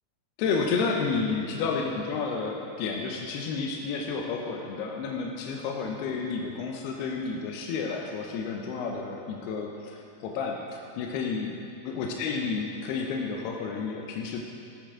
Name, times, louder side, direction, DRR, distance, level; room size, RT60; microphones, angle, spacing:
voice 1, 0.4-11.6 11.8-14.4, left 5 dB, 80° left, 1 dB, 2.7 m, -31 dB
14.5 x 8.6 x 3.7 m, 2.6 s
omnidirectional pair, 4.7 m